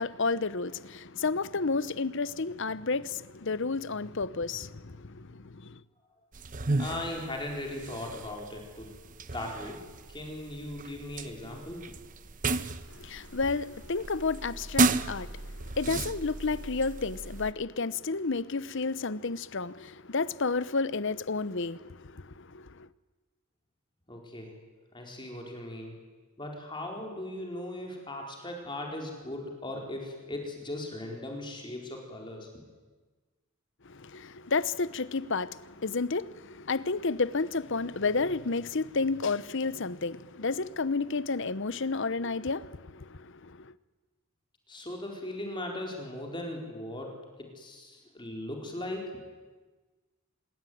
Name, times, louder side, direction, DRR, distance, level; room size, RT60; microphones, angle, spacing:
voice 1, 0.0-5.7 13.0-15.3 15.8-22.7 33.9-43.7, left 4 dB, 60° left, 0.9 m, -31 dB
sound 1, 6.3-17.5, right 3 dB, 35° right, 1.0 m, -34 dB
voice 2, 6.8-8.9 9.3-9.8 10.1-11.8 24.1-24.5 24.9-25.9 26.4-32.6 44.7-47.1 47.4-49.2, left 1 dB, 20° left, 4.4 m, -38 dB
26.0 x 21.5 x 9.4 m
head